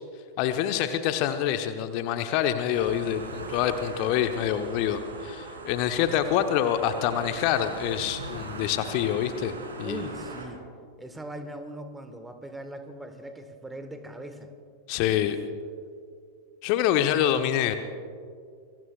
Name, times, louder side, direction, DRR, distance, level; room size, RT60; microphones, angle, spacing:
voice 1, 0.4-10.1 14.9-15.4 16.6-17.8, left 10 dB, 45° left, 8 dB, 0.9 m, -26 dB
sound 1, 2.7-10.5, right 3 dB, 70° right, 3.0 m, -40 dB
voice 2, 9.8-10.6 11.0-14.5 15.0-15.2, right 1 dB, 10° right, 8 dB, 1.5 m, -40 dB
26.5 x 22.0 x 2.4 m, 2.2 s
figure-of-eight pair, 90°, 0 cm